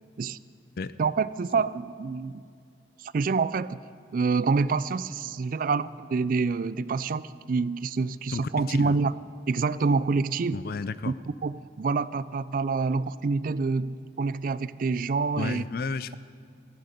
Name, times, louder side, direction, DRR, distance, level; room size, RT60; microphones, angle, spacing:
voice 1, 1.0-2.4 3.0-3.8 4.1-7.2 7.5-9.1 9.5-10.6 11.1-11.2 11.4-15.6, right 4 dB, 50° right, 17 dB, 0.4 m, -27 dB
voice 2, 8.3-9.0 10.5-11.1 15.4-16.2, left 4 dB, 55° left, 15 dB, 0.4 m, -32 dB
18.5 x 14.5 x 5.2 m, 2.2 s
head